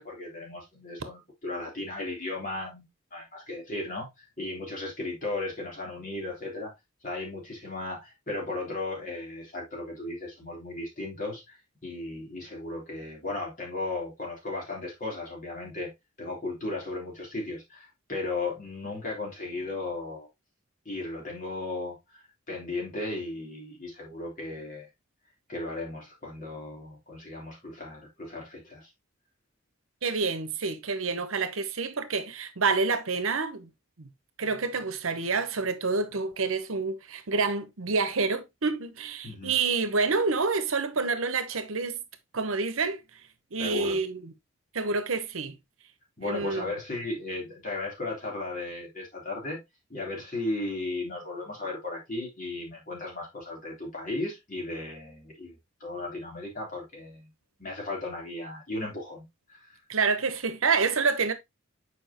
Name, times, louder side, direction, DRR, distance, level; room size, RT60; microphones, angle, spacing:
voice 1, 0.0-6.7 7.0-15.9 16.2-20.3 20.9-24.9 25.5-28.9 39.2-39.6 43.6-44.0 46.2-49.6 49.9-57.3 57.6-59.8, left 2 dB, 40° left, 3.5 m, -36 dB
voice 2, 30.0-33.7 34.0-34.1 34.4-42.0 42.3-43.0 43.5-44.3 44.7-45.6 46.2-46.7 59.9-61.3, right 4 dB, 80° right, 0.9 m, -28 dB
7.1 x 4.9 x 2.9 m
head